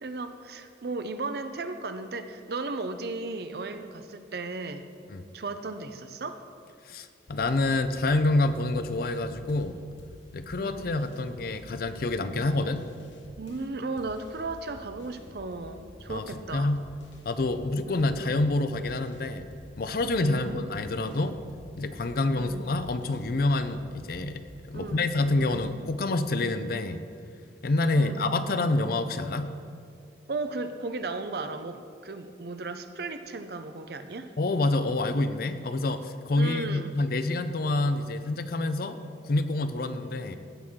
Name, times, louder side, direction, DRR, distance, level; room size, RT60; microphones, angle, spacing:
voice 1, 0.0-4.9 5.3-6.4 10.6-10.9 13.4-16.8 18.0-18.4 20.2-21.2 22.3-22.7 24.7-25.1 25.4-25.6 28.0-28.3 30.3-34.3 36.3-37.1, right 3 dB, 55° right, 9 dB, 0.6 m, -36 dB
voice 2, 6.9-9.8 10.3-12.9 16.1-16.2 16.5-16.8 17.3-19.4 19.8-21.3 21.8-27.0 27.6-29.5 34.4-39.0 39.2-40.4, left 2 dB, 50° left, 10 dB, 0.5 m, -27 dB
sound 1, 7.2-9.7 10.0-13.7 14.0-17.7 18.0-25.8, left 1 dB, 85° left, 1.2 m, -49 dB
16.0 x 6.1 x 3.7 m, 2.3 s
head